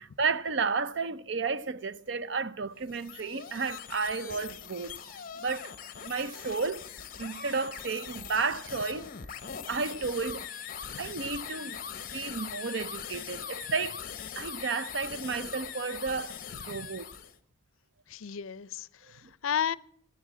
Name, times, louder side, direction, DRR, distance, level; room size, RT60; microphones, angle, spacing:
voice 1, 0.0-5.0 5.3-5.7 6.0-6.9 7.2-9.1 9.7-10.5 11.0-11.8 12.1-14.0 14.4-16.4 16.6-17.1 19.2-19.3, right 4 dB, 55° right, 0.5 m, -32 dB
sound 1, 2.7-17.4, left 8 dB, 40° left, 0.8 m, -41 dB
voice 2, 18.1-19.8, left 8 dB, 75° left, 0.5 m, -33 dB
18.5 x 7.1 x 8.3 m
head